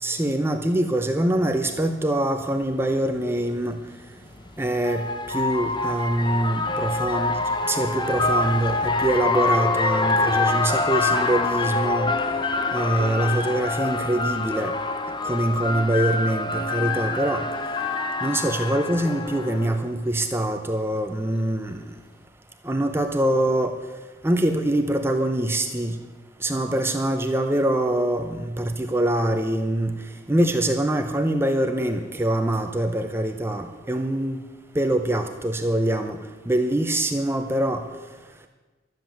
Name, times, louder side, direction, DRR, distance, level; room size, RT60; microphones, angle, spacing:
voice 1, 0.0-3.8 4.6-7.3 7.7-12.1 12.7-14.8 15.2-17.5 18.2-21.8 22.6-23.7 24.2-26.0 26.4-29.9 30.3-34.4 34.7-36.2 36.5-37.8, right 1 dB, 15° right, 5 dB, 0.7 m, -24 dB
sound 1, 2.7-2.8 4.2-19.8, left 3 dB, 25° left, 0.9 m, -25 dB
12.5 x 7.7 x 9.0 m, 1.3 s
head